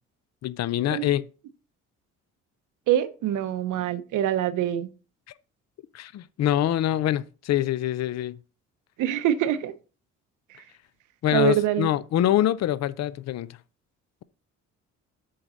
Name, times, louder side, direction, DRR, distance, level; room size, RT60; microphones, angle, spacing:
voice 1, 0.4-1.2 5.9-8.4 11.2-13.6, left 12 dB, 60° left, 0.5 m, -25 dB
voice 2, 2.9-4.9 9.0-9.7 11.3-11.9, right 11 dB, 85° right, 0.9 m, -24 dB
7.7 x 4.0 x 6.2 m
cardioid pair, 90°, 30 cm